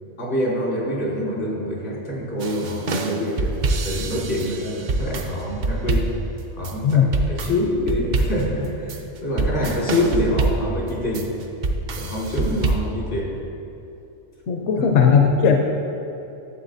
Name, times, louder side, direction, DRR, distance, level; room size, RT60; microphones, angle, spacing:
voice 1, 0.0-3.5 3.8-6.1 6.6-11.3 12.0-13.3 14.8-14.9, left 1 dB, 90° left, -5 dB, 2.2 m, -26 dB
sound 1, 2.4-12.8, right 2 dB, 55° right, 0.5 m, -25 dB
voice 2, 14.5-15.6, left 6 dB, 70° left, 2 dB, 0.9 m, -17 dB
11.0 x 7.4 x 2.6 m, 2.9 s
omnidirectional pair, 1.2 m